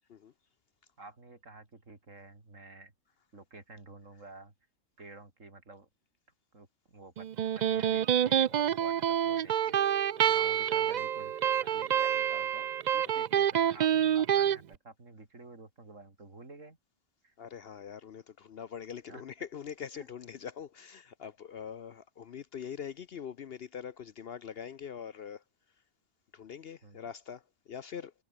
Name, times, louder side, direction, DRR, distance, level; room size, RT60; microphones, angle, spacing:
voice 1, 1.0-2.9 3.3-4.5 5.0-5.9 6.5-9.8 10.3-16.8 17.2-17.3 19.1-19.2 19.9-20.1 26.8-27.1, right 3 dB, 70° right, 4.3 m, -51 dB
Electric guitar, 7.2-14.6, right 10 dB, 90° right, 0.3 m, -27 dB
voice 2, 17.4-25.4 26.3-28.1, left 7 dB, 55° left, 0.8 m, -43 dB
omnidirectional pair, 1.4 m